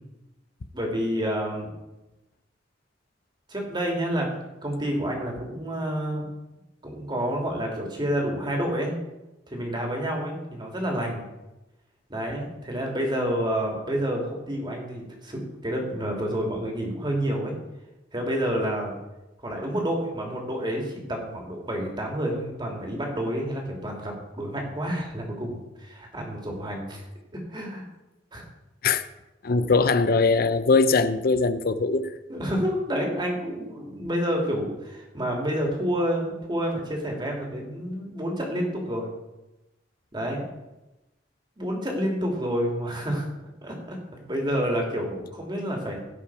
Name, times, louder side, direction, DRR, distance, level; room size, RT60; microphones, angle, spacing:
voice 1, 0.7-1.7 3.5-4.3 4.6-6.3 6.8-8.9 9.5-11.2 12.1-17.5 18.1-18.9 19.4-27.0 27.3-27.8 28.3-28.4 32.3-39.1 40.1-40.4 41.6-43.3 43.6-44.0 44.2-46.0, equal, 25° right, 0 dB, 2.6 m, -29 dB
voice 2, 29.4-32.1, left 4 dB, 55° left, 12 dB, 0.6 m, -21 dB
16.5 x 5.8 x 4.8 m, 0.99 s
head